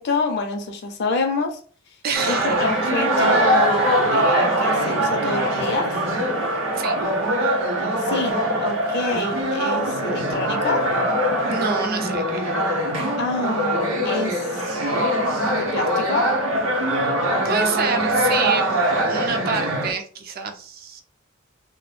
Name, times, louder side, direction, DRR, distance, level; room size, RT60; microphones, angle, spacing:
voice 1, 0.0-1.6 2.2-5.9 8.0-10.9 13.2-14.7 15.5-16.3, left 3 dB, 55° left, 0.4 m, -27 dB
voice 2, 2.0-2.7 6.8-7.0 11.5-12.5 17.4-18.8 19.1-21.0, right 5 dB, 50° right, 0.4 m, -28 dB
sound 1, 2.1-19.9, right 1 dB, 85° right, 0.7 m, -22 dB
2.3 x 2.0 x 3.0 m
head